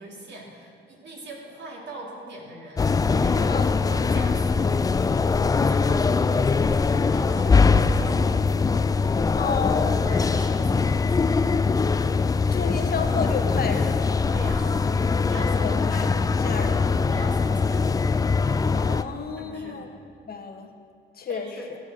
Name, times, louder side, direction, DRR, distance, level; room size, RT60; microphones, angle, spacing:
voice 1, 0.0-3.6 3.9-4.7 5.0-8.4 9.4-11.3 14.3-14.7 15.2-17.9 19.4-19.8 21.3-21.7, right 1 dB, 60° right, -1 dB, 2.6 m, -41 dB
sound 1, 2.8-19.0, left 4 dB, 20° left, 0.3 m, -22 dB
voice 2, 9.4-10.2 10.5-10.6 12.5-14.1 15.5-16.8 18.7-19.9 20.3-20.7 21.2-21.8, left 5 dB, 50° left, 4 dB, 1.2 m, -31 dB
14.0 x 6.5 x 6.0 m, 2.2 s
cardioid pair, 90°, 20 cm